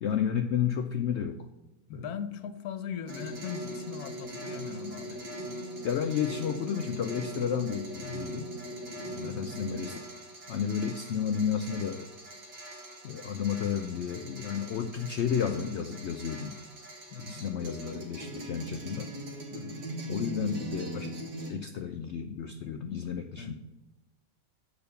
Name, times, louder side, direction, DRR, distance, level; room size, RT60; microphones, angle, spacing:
voice 1, 0.0-1.5 1.9-2.0 5.8-8.5 9.0-10.0 10.5-12.1 13.0-16.6 17.2-19.1 20.1-23.5, left 8 dB, 90° left, 7 dB, 0.6 m, -32 dB
voice 2, 1.9-5.2 8.0-8.3 9.2-9.6 17.1-17.4 19.5-19.9 23.3-23.5, left 7 dB, 70° left, 11 dB, 1.2 m, -40 dB
sound 1, 3.1-21.5, right 1 dB, 85° right, 2.4 m, -41 dB
8.7 x 4.9 x 6.8 m, 1.0 s
omnidirectional pair, 1.8 m